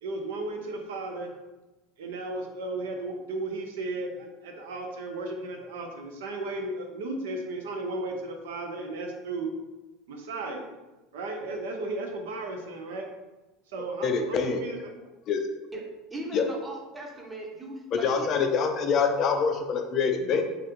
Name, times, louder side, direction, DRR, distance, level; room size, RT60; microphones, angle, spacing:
voice 1, 0.0-1.3 2.0-9.5 10.1-10.7 11.1-13.1 13.7-14.9, right 2 dB, 75° right, 3 dB, 0.4 m, -35 dB
voice 2, 14.0-14.7 15.3-15.4 16.3-16.5 18.0-20.4, left 5 dB, 50° left, 5 dB, 0.4 m, -25 dB
voice 3, 16.1-18.3, right 1 dB, 15° right, -1 dB, 0.8 m, -38 dB
3.2 x 2.4 x 3.0 m, 1.1 s
hypercardioid pair, 80°, 0 cm